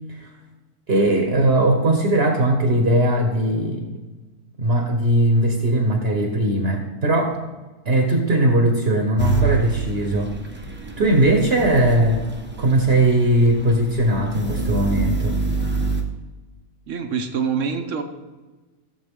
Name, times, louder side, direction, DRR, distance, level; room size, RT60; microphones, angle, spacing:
voice 1, 0.9-4.0 4.6-7.4 7.8-10.4 11.0-12.3 12.6-15.4, right 1 dB, 40° right, 3 dB, 1.3 m, -19 dB
sound 1, 9.2-16.0, right 3 dB, 10° right, 0.8 m, -27 dB
voice 2, 16.9-18.0, right 6 dB, 60° right, 7 dB, 1.2 m, -25 dB
15.0 x 7.3 x 3.7 m, 1.2 s
omnidirectional pair, 1.7 m